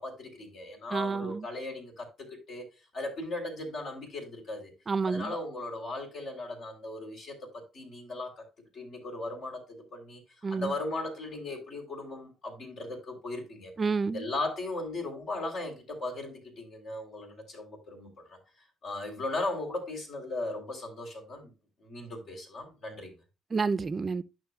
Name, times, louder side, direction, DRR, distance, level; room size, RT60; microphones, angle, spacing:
voice 1, 0.0-2.7 2.9-4.7 5.0-8.4 8.7-9.6 9.9-10.2 10.5-13.7 14.1-18.4 18.8-21.5 21.8-23.1, left 2 dB, 65° left, 3.6 m, -37 dB
voice 2, 0.9-1.5 4.9-5.3 10.4-10.7 13.8-14.3 23.5-24.2, right 4 dB, 40° right, 0.5 m, -29 dB
11.5 x 6.1 x 2.3 m
supercardioid pair, 60°, 0 cm